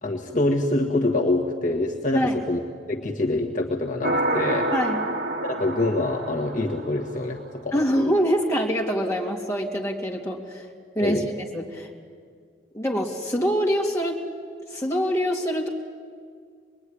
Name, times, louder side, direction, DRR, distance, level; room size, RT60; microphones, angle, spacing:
voice 1, 0.0-2.6 2.9-4.7 5.4-8.1 11.0-11.3, left 2 dB, 40° left, 1 dB, 1.5 m, -25 dB
sound 1, 4.0-7.5, right 1 dB, 65° right, 2.3 m, -28 dB
voice 2, 4.7-5.0 7.7-10.7 10.9-11.2 11.5-11.9 12.7-14.2 14.7-15.7, equal, 15° left, -1 dB, 2.9 m, -24 dB
26.0 x 21.0 x 9.9 m, 2.1 s
head